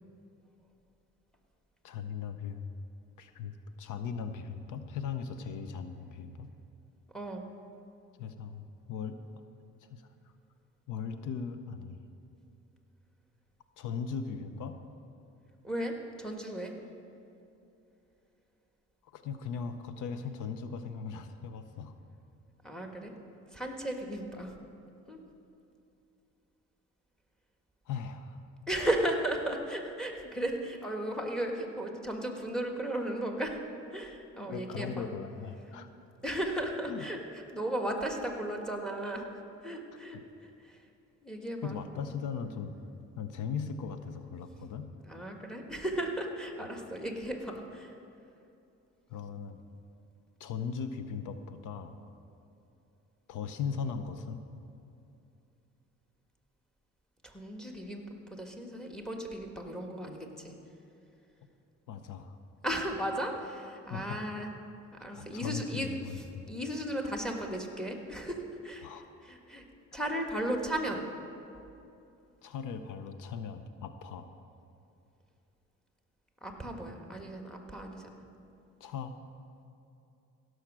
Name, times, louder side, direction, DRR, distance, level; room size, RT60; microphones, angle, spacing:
voice 1, 1.8-2.7 3.2-6.5 8.2-9.2 9.9-10.0 10.9-12.0 13.8-14.8 19.0-21.9 27.9-28.4 28.7-28.9 34.3-35.9 36.9-37.0 40.1-40.2 41.6-42.8 43.2-44.9 49.1-49.6 50.4-52.0 53.3-54.4 61.9-62.4 63.9-64.2 65.1-66.5 68.8-69.1 69.9-70.0 72.4-74.3 78.8-79.2, left 6 dB, 85° left, 9 dB, 0.7 m, -38 dB
voice 2, 7.1-7.5 15.6-16.7 22.6-23.1 23.5-24.5 25.1-25.2 28.7-33.6 33.9-35.1 35.7-35.8 36.2-40.8 41.2-41.8 45.0-47.9 57.2-60.6 62.6-64.5 65.0-69.6 69.9-71.1 71.5-71.6 76.4-78.2, right 1 dB, ahead, 2 dB, 1.5 m, -35 dB
16.0 x 6.4 x 6.2 m, 2.7 s
cardioid pair, 90°, 30 cm